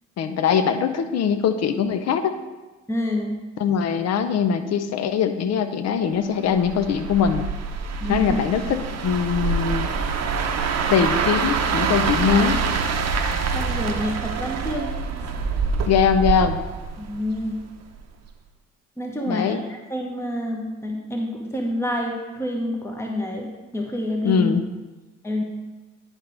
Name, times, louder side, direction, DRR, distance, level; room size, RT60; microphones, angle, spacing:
voice 1, 0.2-2.3 3.6-7.5 8.1-9.9 10.9-12.6 15.9-16.6 19.3-19.6 24.2-24.6, left 7 dB, 40° left, 9 dB, 0.7 m, -22 dB
voice 2, 2.9-3.4 8.0-8.4 13.5-15.0 17.0-17.6 19.0-24.5 25.2-25.4, left 1 dB, 5° left, 1 dB, 1.1 m, -28 dB
sound 1, 6.5-17.6 18.0-18.3, right 5 dB, 40° right, 0.8 m, -25 dB
9.8 x 5.3 x 3.5 m, 1.2 s
figure-of-eight pair, 50°, 38 cm